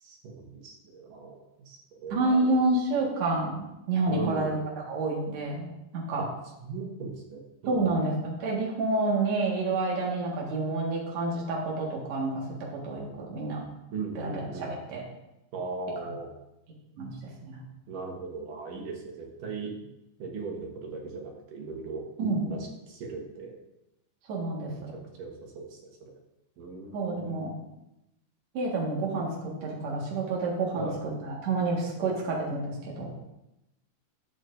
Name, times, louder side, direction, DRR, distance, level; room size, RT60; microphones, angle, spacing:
voice 1, 0.0-2.6 4.1-4.6 6.2-6.3 6.6-8.0 13.9-14.8 15.5-16.3 17.9-19.7 20.2-22.0 22.5-22.6 22.9-23.5 24.7-26.1 26.6-27.4 30.8-31.0, right 4 dB, 90° right, 0 dB, 3.0 m, -38 dB
voice 2, 2.1-4.6 4.8-5.7 5.9-6.2 7.7-13.6 14.2-15.0 16.0-16.1 17.0-17.1 17.5-17.6 22.2-22.5 24.3-24.9 26.9-27.5 28.5-30.9 31.2-33.1, right 2 dB, 60° right, -3 dB, 2.8 m, -29 dB
11.5 x 8.0 x 2.6 m, 0.92 s
omnidirectional pair, 3.7 m